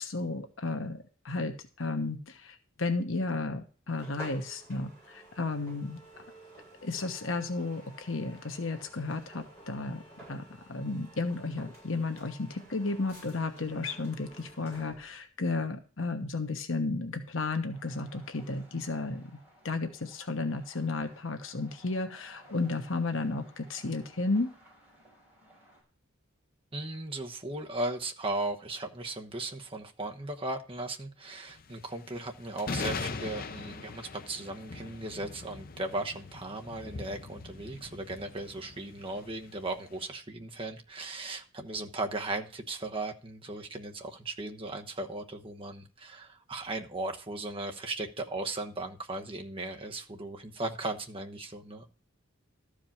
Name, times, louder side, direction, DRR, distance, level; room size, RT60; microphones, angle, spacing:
voice 1, 0.0-6.0 6.8-10.0 10.3-19.2 19.6-24.5, left 3 dB, 70° left, 7 dB, 1.2 m, -33 dB
sound 1, 3.9-15.2, right 1 dB, 15° left, 6.9 m, -52 dB
sound 2, 17.7-25.8, right 1 dB, 5° right, 6.1 m, -59 dB
voice 2, 26.7-51.9, right 2 dB, 25° right, 4 dB, 1.1 m, -37 dB
sound 3, 31.5-40.0, left 4 dB, 45° left, 0.6 m, -41 dB
13.0 x 5.1 x 7.2 m, 0.37 s
head